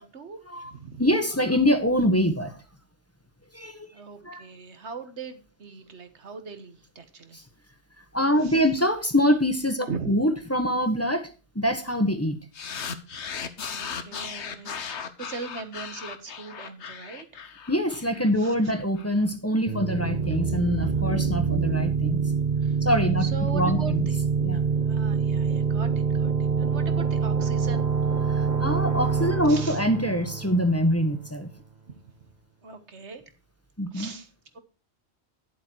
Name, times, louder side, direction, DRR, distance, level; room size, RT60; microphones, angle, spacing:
voice 1, 0.0-1.0 3.9-7.4 8.4-8.6 9.9-10.2 13.1-13.2 13.7-17.4 18.4-18.5 22.6-22.8 23.2-24.2 24.5-27.9 29.5-29.8 31.9-32.1 32.6-33.2 33.9-34.6, right 4 dB, 85° right, 9 dB, 1.8 m, -40 dB
voice 2, 1.0-2.5 3.5-3.9 4.2-4.4 7.3-7.4 8.1-11.3 11.5-12.4 17.7-22.2 22.8-23.2 23.5-24.1 24.4-24.6 28.3-31.5 33.8-34.1, equal, 15° left, 7 dB, 1.4 m, -24 dB
sound 1, 12.5-19.1, left 6 dB, 90° left, 1.3 m, -37 dB
sound 2, 19.7-31.2, right 5 dB, 40° right, 1.2 m, -25 dB
11.0 x 7.8 x 4.6 m, 0.34 s
omnidirectional pair, 1.1 m